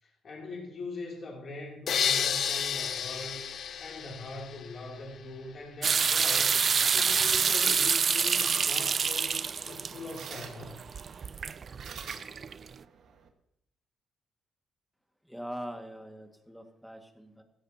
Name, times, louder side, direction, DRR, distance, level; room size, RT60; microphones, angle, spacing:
voice 1, 0.0-3.4 3.8-6.6 6.9-10.8, left 2 dB, 50° left, -2 dB, 3.1 m, -42 dB
sound 1, 1.9-4.9, left 8 dB, 65° left, 0.8 m, -31 dB
sound 2, 5.8-12.7, right 6 dB, 45° right, 0.4 m, -27 dB
sound 3, 7.2-13.3, right 7 dB, 70° right, 1.6 m, -48 dB
voice 2, 15.3-17.4, equal, ahead, 4 dB, 2.0 m, -42 dB
16.0 x 14.5 x 2.9 m, 0.77 s
cardioid pair, 90°, 0 cm